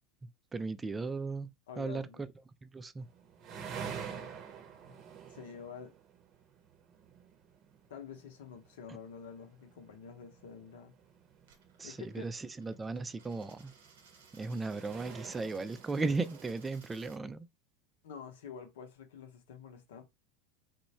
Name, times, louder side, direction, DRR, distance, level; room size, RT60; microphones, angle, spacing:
voice 1, 0.2-1.5 1.8-2.3 2.6-3.1 8.9-9.0 11.8-13.7 14.3-17.4, right 3 dB, 20° right, 0.4 m, -36 dB
voice 2, 1.7-2.2 4.1-4.5 4.8-5.0 5.3-5.9 7.9-10.9 11.8-12.3 18.0-20.0, left 6 dB, 75° left, 0.8 m, -48 dB
sound 1, 3.0-16.8, right 7 dB, 45° right, 0.7 m, -49 dB
Coin (dropping), 11.4-17.2, right 5 dB, 80° right, 0.8 m, -61 dB
3.1 x 2.2 x 4.1 m
hypercardioid pair, 85°, 0 cm